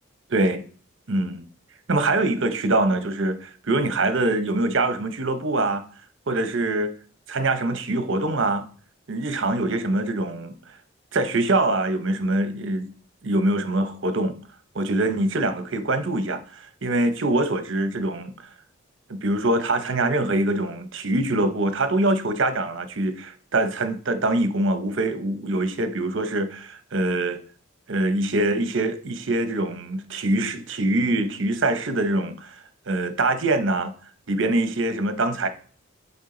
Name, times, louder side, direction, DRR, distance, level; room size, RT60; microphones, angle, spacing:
voice 1, 1.1-1.4 1.9-5.8 6.3-6.9 7.3-8.7 9.1-10.5 11.1-12.9 13.2-14.4 14.7-18.3 19.1-27.4 27.9-32.6 32.9-33.9 34.3-35.5, right 2 dB, 60° right, 0.8 m, -24 dB
7.3 x 4.4 x 3.8 m
head